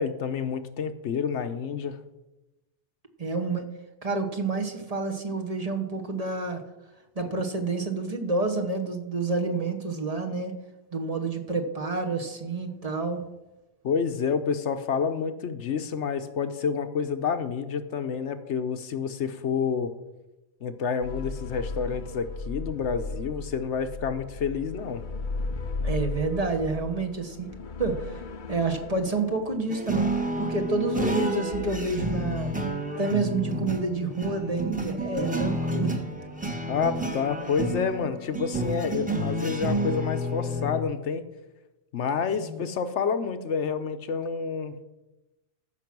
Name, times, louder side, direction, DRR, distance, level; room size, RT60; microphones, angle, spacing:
voice 1, 0.0-2.0 13.8-19.9 20.6-25.0 36.7-41.2 41.9-44.8, left 6 dB, 80° left, 9 dB, 1.1 m, -29 dB
voice 2, 3.2-3.7 4.0-6.6 7.1-10.5 10.9-13.2 25.8-27.5 27.8-28.1 28.5-30.1 30.4-32.6 33.0-35.9 42.4-42.6, right 3 dB, 35° right, 4 dB, 1.2 m, -29 dB
sound 1, 21.0-32.5, left 3 dB, 50° left, 0.8 m, -37 dB
sound 2, 29.7-40.8, right 1 dB, 5° right, 1.2 m, -30 dB
14.5 x 6.0 x 6.0 m, 1.0 s
omnidirectional pair, 1.2 m